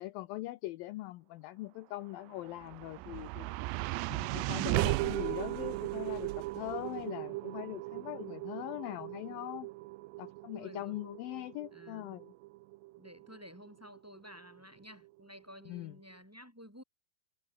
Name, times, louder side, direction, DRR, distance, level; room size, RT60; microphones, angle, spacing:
voice 1, 0.0-3.5 4.1-9.7 10.2-12.3 15.7-15.9, left 17 dB, 80° left, 2.1 m, -41 dB
sound 1, 2.2-14.5, right 20 dB, 85° right, 2.8 m, -37 dB
voice 2, 3.0-3.3 10.6-11.0 11.7-12.2 13.0-16.8, equal, 5° right, 6.2 m, -53 dB
omnidirectional pair, 4.9 m